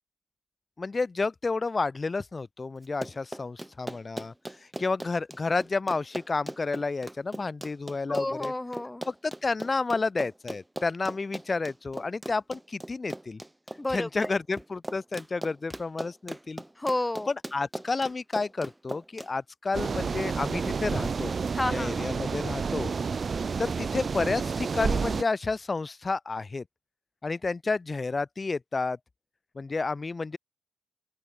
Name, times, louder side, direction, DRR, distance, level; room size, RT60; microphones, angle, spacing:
voice 1, 0.8-4.3 4.8-8.5 9.1-13.4 13.9-16.6 17.3-21.3 21.7-22.9 23.6-26.6 27.2-29.0 29.6-30.4, left 3 dB, 35° left, 4.0 m, -30 dB
Run, 2.8-19.3, right 1 dB, 10° right, 4.6 m, -39 dB
voice 2, 8.1-9.0 13.8-14.3 16.8-17.3 21.5-22.0, left 2 dB, 15° left, 1.1 m, -30 dB
sound 1, 19.7-25.2, right 5 dB, 45° right, 2.4 m, -30 dB
open air
supercardioid pair, 60°, 0 cm